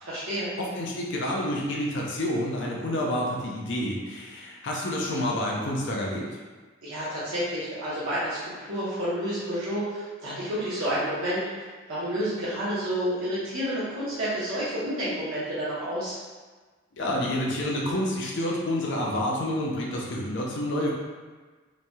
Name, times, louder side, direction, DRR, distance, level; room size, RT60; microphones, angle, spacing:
voice 1, 0.0-0.5 6.8-16.2, equal, 85° right, -10 dB, 0.9 m, -30 dB
voice 2, 0.6-6.2 17.0-20.9, left 1 dB, 55° left, -2 dB, 0.5 m, -28 dB
3.0 x 2.6 x 2.2 m, 1.4 s
head